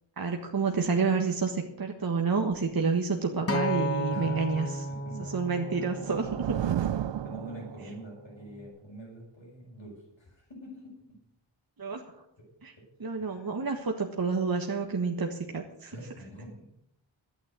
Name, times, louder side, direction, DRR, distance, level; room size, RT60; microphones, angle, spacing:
voice 1, 0.2-4.8 5.3-6.3 6.7-6.8 11.8-12.0 12.6-12.7 13.0-15.9, right 4 dB, 50° right, 3 dB, 1.5 m, -29 dB
Acoustic guitar, 3.5-7.7 8.6-8.7, equal, 30° left, 1.3 m, -34 dB
voice 2, 4.1-5.3 5.7-5.9 7.0-11.2 12.4-12.5 12.8-12.9 13.2-13.5 15.9-16.6, right 1 dB, 70° left, -7 dB, 6.0 m, -46 dB
sound 1, 5.3-8.2, right 10 dB, 65° right, 0.6 m, -33 dB
11.0 x 9.2 x 7.8 m, 0.78 s
cardioid pair, 45°, 47 cm